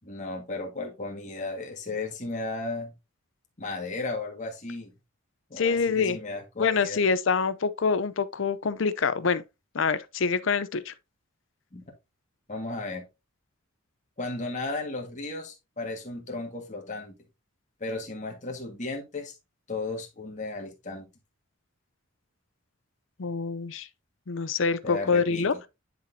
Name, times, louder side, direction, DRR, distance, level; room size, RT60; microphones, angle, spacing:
voice 1, 0.0-2.9 3.6-4.9 5.5-7.0 11.7-11.8 12.5-13.1 14.2-17.1 17.8-19.4 19.7-21.1 24.8-25.6, left 2 dB, 35° left, 1.8 m, -35 dB
voice 2, 5.6-6.2 6.6-9.4 9.7-10.9 23.2-23.9 24.3-25.5, left 5 dB, 65° left, 0.6 m, -26 dB
10.0 x 4.2 x 2.7 m
head